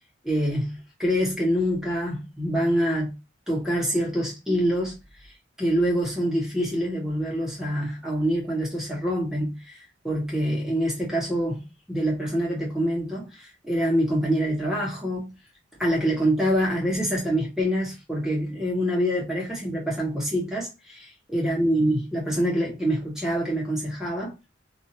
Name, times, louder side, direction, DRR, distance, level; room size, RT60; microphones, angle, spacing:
voice 1, 0.2-3.2 3.5-5.0 5.6-9.8 10.0-15.3 15.8-24.3, equal, 5° right, 0.9 m, -25 dB
2.7 x 2.4 x 2.7 m
head